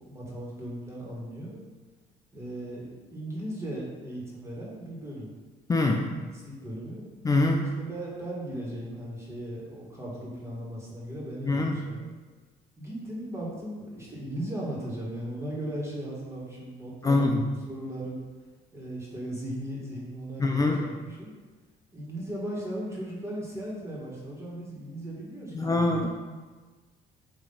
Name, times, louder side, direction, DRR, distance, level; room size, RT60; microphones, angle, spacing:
voice 1, 0.0-1.6 2.3-5.3 5.8-7.0 7.9-12.0 12.8-18.2 18.7-21.3 21.9-26.0, right 1 dB, 15° right, -5 dB, 1.8 m, -37 dB
voice 2, 5.7-6.1 7.2-7.6 11.5-11.8 17.0-17.4 20.4-20.8 25.5-26.1, left 2 dB, 20° left, 1 dB, 0.5 m, -24 dB
8.5 x 3.0 x 3.9 m, 1.3 s
cardioid pair, 110°, 17 cm